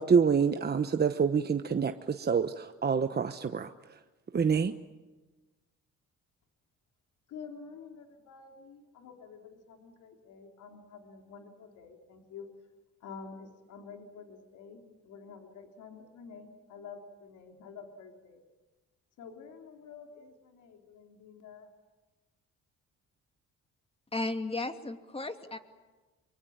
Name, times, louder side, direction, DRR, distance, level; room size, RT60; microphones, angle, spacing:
voice 1, 0.0-3.7 4.3-4.7, right 6 dB, 35° right, 9 dB, 1.1 m, -27 dB
voice 2, 7.3-12.5 13.0-18.4 19.2-21.7, left 5 dB, 80° left, 3 dB, 3.8 m, -49 dB
voice 3, 24.1-25.6, left 2 dB, 20° left, 7 dB, 2.6 m, -34 dB
24.5 x 24.0 x 8.9 m, 1.2 s
cardioid pair, 90°, 30 cm